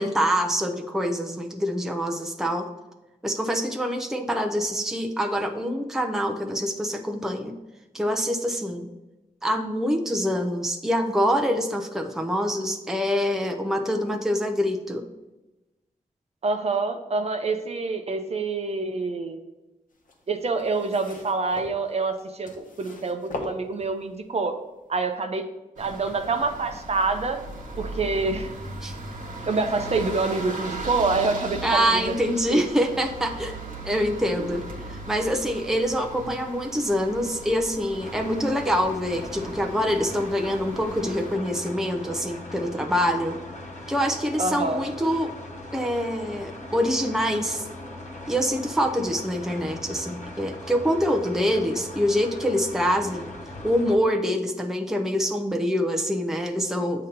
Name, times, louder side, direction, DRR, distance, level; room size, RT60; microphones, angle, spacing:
voice 1, 0.0-2.7 3.2-7.5 7.9-8.9 9.4-15.0 28.8-28.9 31.6-34.6 34.9-43.4 43.9-45.3 45.7-47.7 48.3-53.3 53.6-57.1, equal, 5° right, 3 dB, 0.6 m, -25 dB
voice 2, 16.4-19.4 20.3-24.5 24.9-25.4 25.8-27.4 27.8-28.5 29.5-32.6 44.4-44.9, right 3 dB, 50° right, 6 dB, 0.6 m, -26 dB
sound 1, 19.9-24.2 25.0-25.1, left 2 dB, 70° left, 1.0 m, -40 dB
sound 2, 25.8-41.3, right 2 dB, 65° right, 1.1 m, -38 dB
sound 3, 38.0-54.0, left 1 dB, 55° left, 1.2 m, -39 dB
8.0 x 2.9 x 5.1 m, 1.0 s
wide cardioid pair, 110°, 14 cm